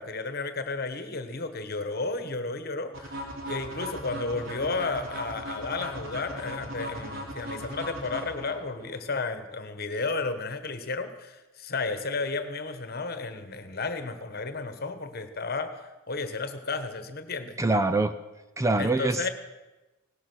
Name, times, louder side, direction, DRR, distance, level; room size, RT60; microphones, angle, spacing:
voice 1, 0.0-17.6 18.8-19.3, left 3 dB, 45° left, 10 dB, 1.3 m, -33 dB
sound 1, 2.9-8.9, equal, 60° right, 2.9 m, -38 dB
voice 2, 17.6-18.1 18.6-19.3, right 2 dB, 15° right, 10 dB, 0.5 m, -24 dB
18.0 x 12.0 x 6.2 m, 1.1 s
head